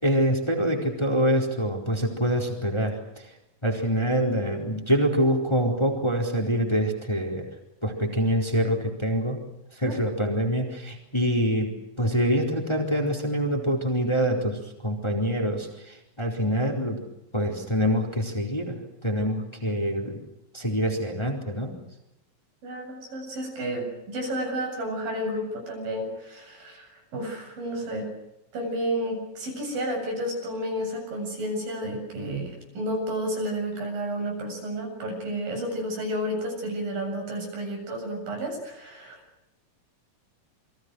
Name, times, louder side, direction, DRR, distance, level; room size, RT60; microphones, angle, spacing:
voice 1, 0.0-3.3 3.6-7.5 7.8-9.4 9.8-17.0 17.3-18.7 19.0-20.2 20.5-21.7, equal, 5° left, 2 dB, 4.1 m, -25 dB
voice 2, 22.6-28.1 28.5-39.2, equal, 80° right, 3 dB, 9.3 m, -31 dB
29.0 x 23.5 x 6.4 m, 0.89 s
omnidirectional pair, 4.0 m